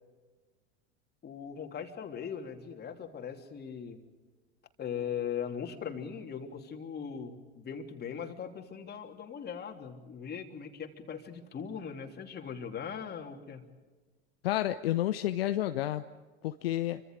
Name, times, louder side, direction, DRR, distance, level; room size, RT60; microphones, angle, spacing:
voice 1, 1.2-4.0 4.8-13.6, left 7 dB, 30° left, 4 dB, 3.3 m, -39 dB
voice 2, 14.4-16.1 16.4-17.0, left 14 dB, 65° left, 10 dB, 0.9 m, -30 dB
29.5 x 25.0 x 5.0 m, 1.3 s
figure-of-eight pair, 70°, 33 cm